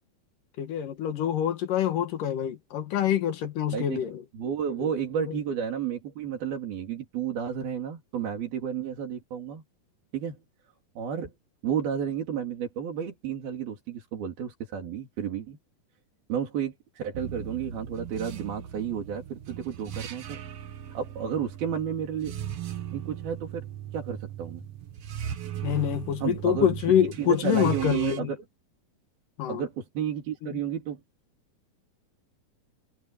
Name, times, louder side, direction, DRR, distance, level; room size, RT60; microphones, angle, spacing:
voice 1, 0.6-4.2 5.2-5.3 25.6-28.3 29.4-29.6 30.4-30.5, left 10 dB, 65° left, 3.0 m, -26 dB
voice 2, 4.3-9.6 10.1-10.4 11.0-11.3 11.6-15.6 16.3-20.4 20.9-22.3 22.9-23.7 23.9-24.6 26.2-26.7 27.2-28.4 29.5-31.0, right 8 dB, 75° right, 5.0 m, -32 dB
sound 1, 17.1-28.2, right 10 dB, 60° right, 1.7 m, -38 dB
omnidirectional pair, 4.3 m